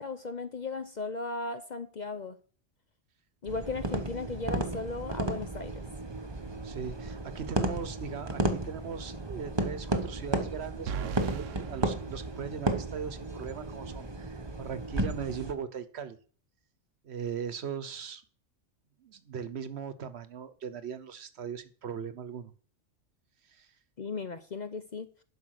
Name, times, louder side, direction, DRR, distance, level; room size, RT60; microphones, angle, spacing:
voice 1, 0.0-2.4 3.4-5.8 24.0-25.1, left 3 dB, 45° left, 11 dB, 0.7 m, -36 dB
sound 1, 3.5-15.5, right 2 dB, 20° right, 1.0 m, -34 dB
voice 2, 6.6-16.2 17.0-18.2 19.0-22.5 23.5-23.7, right 7 dB, 60° right, 13 dB, 1.1 m, -39 dB
sound 2, 10.9-13.0, right 8 dB, 80° right, 1.0 m, -39 dB
11.5 x 5.6 x 6.4 m, 0.42 s
omnidirectional pair, 1.3 m